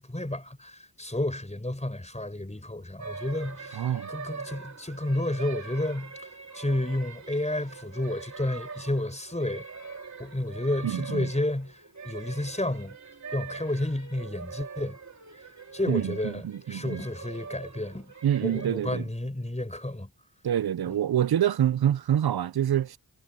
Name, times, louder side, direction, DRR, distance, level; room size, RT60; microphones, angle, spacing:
voice 1, 0.0-6.3 6.5-9.7 10.2-13.0 13.3-15.0 15.7-16.4 16.7-18.1 18.4-20.1, left 1 dB, 15° left, 4.7 m, -31 dB
sound 1, 3.0-18.7, right 5 dB, 45° right, 3.5 m, -43 dB
voice 2, 3.7-4.1 10.8-11.3 15.9-17.0 18.2-19.1 20.4-23.0, right 10 dB, 75° right, 0.6 m, -26 dB
cardioid pair, 45°, 38 cm